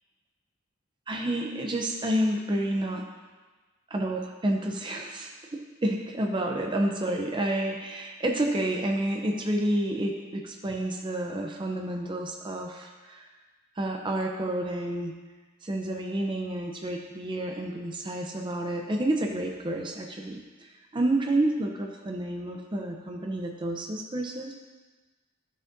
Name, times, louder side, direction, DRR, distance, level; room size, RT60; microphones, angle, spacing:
voice 1, 1.1-3.0 3.9-13.2 13.8-15.2 15.6-24.5, right 1 dB, 20° right, 1 dB, 0.5 m, -29 dB
12.5 x 6.4 x 2.6 m, 1.3 s
head